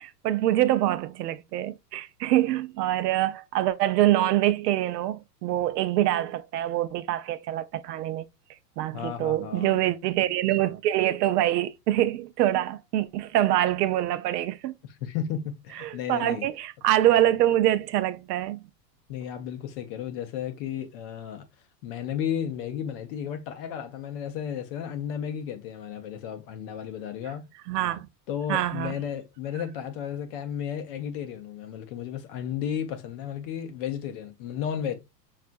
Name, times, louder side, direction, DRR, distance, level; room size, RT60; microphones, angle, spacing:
voice 1, 0.0-8.3 8.8-14.8 15.7-18.6 27.7-28.1 28.5-29.0, right 13 dB, 75° right, 0.6 m, -25 dB
voice 2, 8.9-9.9 15.0-16.5 19.1-21.5 21.8-27.5 28.3-35.0, left 9 dB, 40° left, 0.4 m, -33 dB
5.6 x 2.4 x 2.4 m
supercardioid pair, 135°, 49 cm